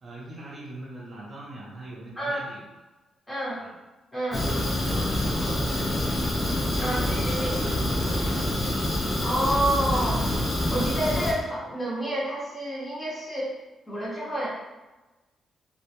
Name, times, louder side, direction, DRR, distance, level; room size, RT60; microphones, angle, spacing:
voice 1, 0.0-2.6 3.6-3.7 4.3-6.5 6.8-8.6, right 2 dB, 35° right, -5 dB, 0.6 m, -40 dB
voice 2, 3.3-3.6 4.1-4.4 6.8-7.5 9.2-10.2 10.7-13.5 13.9-14.5, right 1 dB, 15° left, -7 dB, 0.9 m, -28 dB
Fire, 4.3-11.3, left 1 dB, 40° left, 0.6 m, -26 dB
2.1 x 2.1 x 2.8 m, 1.1 s
cardioid pair, 110°, 0 cm